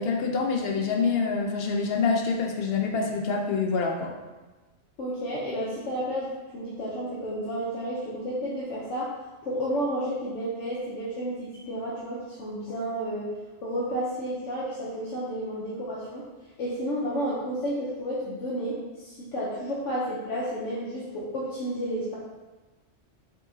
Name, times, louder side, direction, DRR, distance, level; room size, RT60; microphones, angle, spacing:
voice 1, 0.0-4.1, left 4 dB, 65° left, 1 dB, 0.7 m, -26 dB
voice 2, 5.0-9.1 9.4-13.3 13.6-16.2 16.6-22.2, equal, 85° left, -7 dB, 1.1 m, -31 dB
5.1 x 2.8 x 2.6 m, 1.2 s
omnidirectional pair, 1.2 m